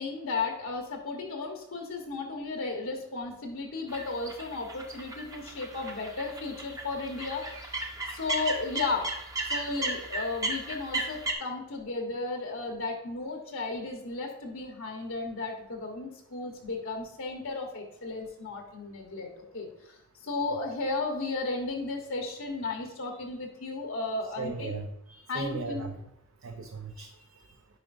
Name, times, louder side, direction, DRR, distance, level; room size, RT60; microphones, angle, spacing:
voice 1, 0.0-7.8 8.1-9.1 9.4-19.7 20.2-24.7 25.3-25.9, left 3 dB, 65° left, 2 dB, 1.1 m, -34 dB
sound 1, 3.9-11.3, right 2 dB, 15° right, 0.8 m, -35 dB
voice 2, 24.4-26.0 26.4-27.5, right 3 dB, 65° right, 3 dB, 0.6 m, -37 dB
9.5 x 5.0 x 2.6 m, 0.81 s
head